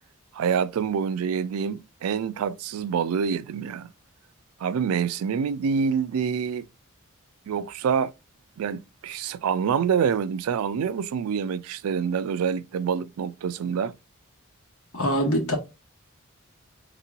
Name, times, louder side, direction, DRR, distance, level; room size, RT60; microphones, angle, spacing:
voice 1, 0.3-3.9 4.6-6.7 7.5-8.1 8.6-13.9, right 7 dB, 85° right, 0.3 m, -26 dB
voice 2, 14.9-15.6, equal, 75° left, 1.3 m, -23 dB
3.6 x 3.0 x 2.4 m
head